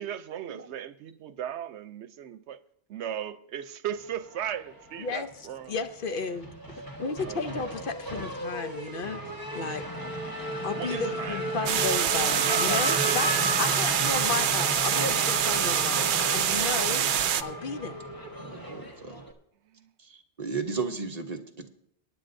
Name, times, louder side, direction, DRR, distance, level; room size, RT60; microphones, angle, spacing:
voice 1, 0.0-2.6 2.9-5.7 7.2-7.8 10.7-12.1 12.3-13.4 18.2-18.6 19.7-19.9 21.6-21.7, right 10 dB, 85° right, 0.9 m, -37 dB
Race car auto racing / Accelerating revving vroom, 4.3-5.3 5.6-19.3, equal, 20° left, 1.3 m, -34 dB
voice 2, 5.0-6.5 7.0-9.2 9.5-9.8 10.6-13.3 13.6-16.0 16.3-17.1 17.4-18.0, left 4 dB, 55° left, 0.8 m, -33 dB
sound 1, 11.7-17.4, right 9 dB, 60° right, 0.6 m, -25 dB
voice 3, 16.0-16.4 18.4-19.2 20.0-21.7, right 4 dB, 40° right, 1.0 m, -35 dB
21.0 x 9.7 x 2.6 m
omnidirectional pair, 1.1 m